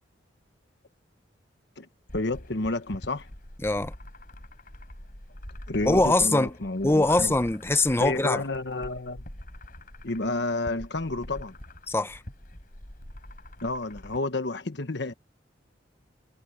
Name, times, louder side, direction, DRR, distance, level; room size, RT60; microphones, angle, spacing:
voice 1, 2.1-3.3 5.7-7.3 8.0-9.2 10.0-11.5 13.6-15.1, left 2 dB, 65° left, 1.3 m, -30 dB
sound 1, 2.1-14.2, left 1 dB, 50° left, 4.7 m, -44 dB
voice 2, 3.6-3.9 5.8-6.5 6.8-8.4 11.9-12.2, left 2 dB, 15° left, 0.7 m, -23 dB
head